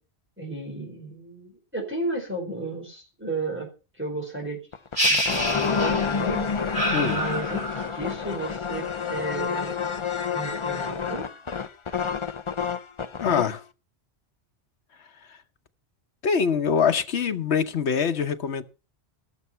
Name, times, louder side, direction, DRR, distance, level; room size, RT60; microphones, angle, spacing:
voice 1, 0.4-3.7 4.0-4.6 5.1-10.0 10.3-11.3, right 2 dB, 10° right, 4.6 m, -33 dB
sound 1, 4.7-13.6, left 6 dB, 35° left, 0.6 m, -29 dB
sound 2, 5.0-6.3 6.7-8.0, equal, 50° right, 5.6 m, -27 dB
voice 2, 13.2-13.6 16.2-18.6, left 6 dB, 90° left, 1.2 m, -24 dB
17.5 x 7.1 x 5.6 m
omnidirectional pair, 1.1 m